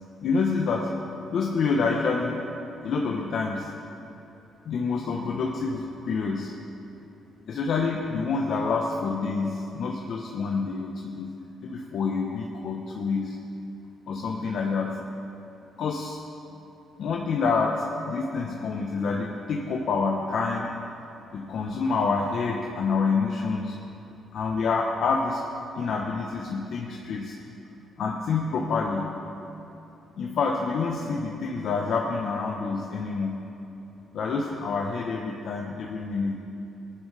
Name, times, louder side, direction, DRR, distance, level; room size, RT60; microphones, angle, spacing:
voice 1, 0.2-0.9 1.3-2.4 2.8-3.7 4.7-6.5 7.5-11.4 11.6-13.4 14.1-15.0 15.8-16.2 17.0-20.7 21.3-23.7 24.3-25.4 25.8-27.3 28.0-29.1 30.2-33.4 34.1-36.4, left 4 dB, 65° left, 0 dB, 1.0 m, -27 dB
18.0 x 11.0 x 3.4 m, 2.9 s
cardioid pair, 90°, 0 cm